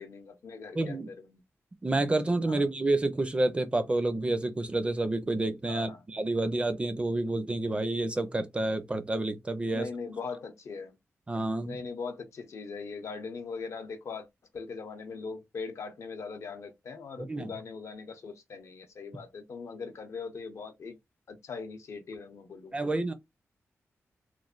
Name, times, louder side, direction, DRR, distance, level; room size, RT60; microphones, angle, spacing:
voice 1, 0.0-1.4 2.5-2.6 5.7-6.0 9.7-11.0 11.6-14.3 14.5-21.0 21.3-22.9, left 4 dB, 70° left, 0.6 m, -40 dB
voice 2, 0.7-1.1 1.8-9.9 11.3-11.8 17.2-17.5 22.7-23.1, right 2 dB, 20° right, 0.4 m, -29 dB
3.1 x 2.1 x 2.4 m
wide cardioid pair, 145°, 5 cm